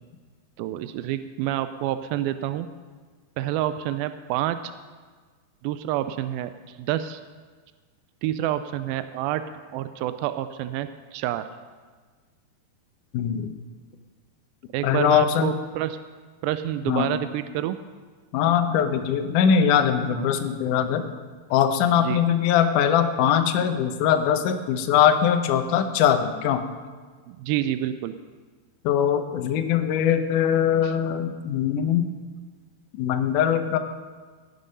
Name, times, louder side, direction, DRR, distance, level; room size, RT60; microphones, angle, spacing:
voice 1, 0.6-2.7 3.4-4.6 5.6-6.5 6.8-7.2 8.2-9.4 9.7-11.4 14.7-16.0 16.4-17.8 20.1-20.3 22.0-22.2 27.3-28.1 30.8-30.9, right 13 dB, 85° right, 11 dB, 2.1 m, -28 dB
voice 2, 13.1-13.5 14.8-15.5 16.9-17.1 18.3-21.1 21.5-26.6 28.8-32.1 32.9-33.8, left 8 dB, 75° left, 6 dB, 1.9 m, -21 dB
17.5 x 9.3 x 5.4 m, 1.5 s
omnidirectional pair, 4.8 m